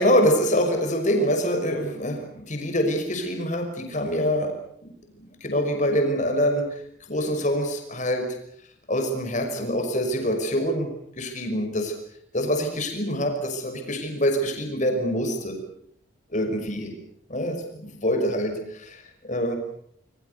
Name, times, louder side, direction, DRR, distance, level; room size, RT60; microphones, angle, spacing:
voice 1, 0.0-4.6 4.8-4.9 5.2-6.8 7.1-8.3 8.9-10.9 11.2-11.9 12.3-15.6 16.3-17.0 17.3-19.6, equal, 35° left, 5 dB, 5.7 m, -25 dB
26.5 x 23.5 x 6.8 m, 0.68 s
head